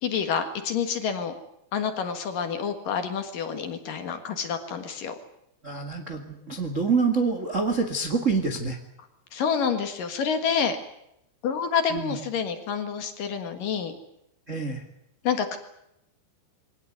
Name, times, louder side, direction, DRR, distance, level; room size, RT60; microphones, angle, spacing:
voice 1, 0.0-1.3 1.7-5.2 9.3-10.8 11.4-13.9 15.2-15.6, left 7 dB, 55° left, 7 dB, 2.9 m, -28 dB
voice 2, 5.6-8.8 11.9-12.1 14.5-14.8, right 4 dB, 50° right, 5 dB, 0.9 m, -26 dB
23.0 x 18.5 x 9.5 m, 0.81 s
omnidirectional pair, 5.4 m